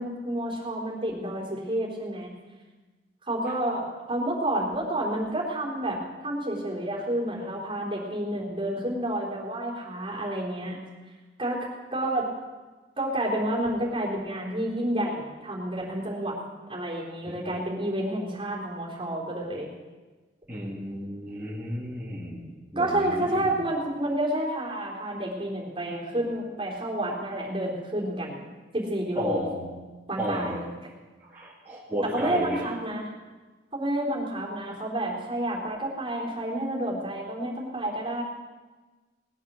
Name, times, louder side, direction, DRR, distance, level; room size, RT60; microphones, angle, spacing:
voice 1, 0.0-2.3 3.3-10.8 11.4-12.3 13.0-16.4 16.7-19.7 22.8-28.4 28.7-29.4 30.1-30.6 32.0-33.1 33.7-38.2, right 1 dB, 30° right, -4 dB, 3.8 m, -29 dB
voice 2, 20.5-23.5 29.1-29.8 30.2-30.7 31.2-32.7, equal, 10° right, -9 dB, 2.8 m, -33 dB
19.5 x 10.5 x 6.3 m, 1.3 s
head